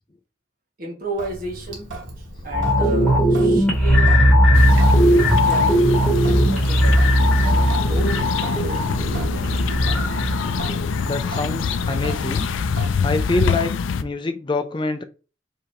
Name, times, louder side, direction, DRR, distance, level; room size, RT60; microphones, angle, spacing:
voice 1, 0.8-1.9 2.2-4.2 5.0-6.1 6.5-7.1 7.4-9.6, right 2 dB, 45° right, 1.3 m, -34 dB
Sink (filling or washing) / Drip, 1.2-13.6, right 1 dB, 75° right, 1.2 m, -36 dB
sound 1, 2.5-11.8 12.2-12.3, equal, 5° left, 1.7 m, -18 dB
sound 2, 4.5-14.0, left 6 dB, 80° left, 0.4 m, -25 dB
voice 2, 11.0-12.5 13.0-13.7 14.0-15.0, left 2 dB, 25° left, 0.5 m, -25 dB
4.8 x 2.8 x 2.6 m
head